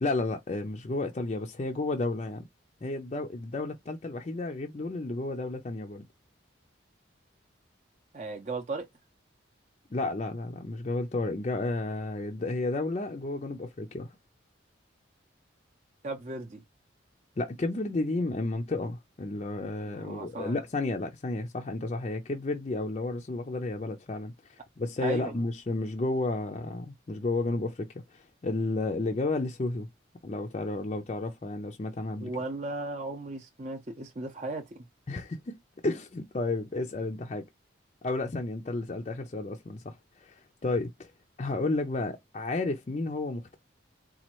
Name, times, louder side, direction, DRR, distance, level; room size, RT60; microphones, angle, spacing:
voice 1, 0.0-2.5 2.8-6.1 9.9-14.1 17.4-29.9 30.2-32.3 35.1-37.4 38.0-41.1 41.4-43.6, left 2 dB, 35° left, 0.4 m, -32 dB
voice 2, 8.1-8.9 16.0-16.6 19.9-20.6 25.0-25.3 32.2-34.8, right 2 dB, 35° right, 0.6 m, -36 dB
4.2 x 2.3 x 3.0 m
head